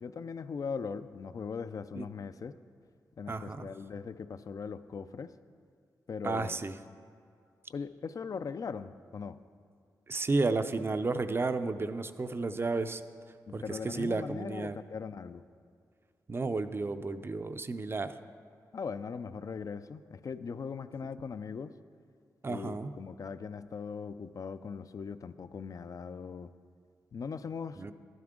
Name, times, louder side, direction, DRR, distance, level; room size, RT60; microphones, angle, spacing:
voice 1, 0.0-2.5 3.2-5.4 6.1-6.7 7.7-9.4 13.5-15.4 18.7-21.7 22.5-26.5 27.1-27.8, left 5 dB, 55° left, 13 dB, 0.4 m, -40 dB
voice 2, 3.3-3.7 6.2-6.7 10.1-13.0 13.5-14.8 16.3-18.1 22.4-22.9 27.8-27.9, right 3 dB, 35° right, 11 dB, 0.5 m, -32 dB
12.0 x 9.4 x 3.7 m, 2.3 s
cardioid pair, 65°, 7 cm